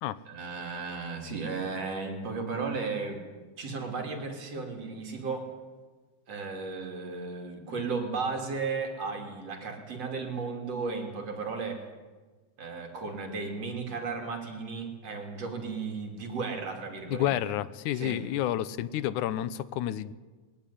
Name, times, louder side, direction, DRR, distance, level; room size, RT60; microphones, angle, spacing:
voice 1, 0.3-3.2 3.6-5.5 6.3-11.8 12.6-17.5 17.9-18.2, right 4 dB, 55° right, 3 dB, 3.9 m, -35 dB
voice 2, 17.1-20.1, left 12 dB, 80° left, 16 dB, 2.3 m, -30 dB
21.5 x 16.5 x 10.0 m, 1.3 s
omnidirectional pair, 3.5 m